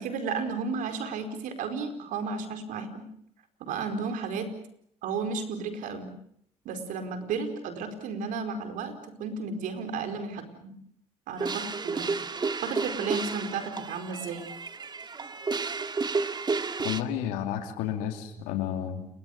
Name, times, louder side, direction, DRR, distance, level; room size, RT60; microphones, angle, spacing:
voice 1, 0.0-3.1 3.6-4.5 5.0-6.1 6.6-10.7 11.3-14.4, right 5 dB, 75° right, 8 dB, 4.7 m, -33 dB
sound 1, 11.4-17.0, right 4 dB, 30° right, 1.9 m, -32 dB
voice 2, 16.8-19.1, left 10 dB, 90° left, 7 dB, 2.8 m, -31 dB
29.5 x 23.0 x 6.6 m, 0.68 s
supercardioid pair, 75°, 14 cm